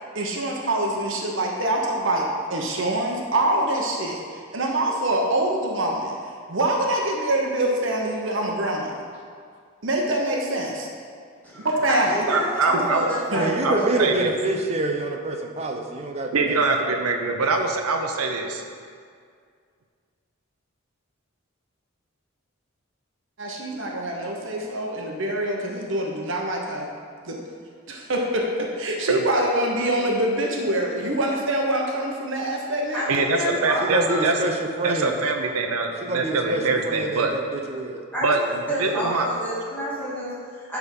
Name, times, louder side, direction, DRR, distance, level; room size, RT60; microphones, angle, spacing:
voice 1, 0.1-8.9 9.8-10.9 11.5-12.1 13.3-13.4 23.4-26.9 27.2-27.4 27.9-33.1 33.5-33.6, right 1 dB, 60° right, 0 dB, 0.9 m, -25 dB
voice 2, 11.4-14.1 32.9-34.3 38.1-38.4 38.7-40.8, equal, 10° left, -9 dB, 2.0 m, -29 dB
voice 3, 12.3-13.1 13.6-14.3 16.3-18.6 29.1-29.2 33.1-34.5 34.8-37.3 38.2-38.4 38.8-39.3, right 3 dB, 90° right, 4 dB, 0.7 m, -23 dB
voice 4, 13.3-17.0 33.8-35.1 36.0-38.0 38.9-39.0, right 2 dB, 30° right, 3 dB, 0.6 m, -27 dB
10.5 x 3.6 x 5.3 m, 2.1 s
head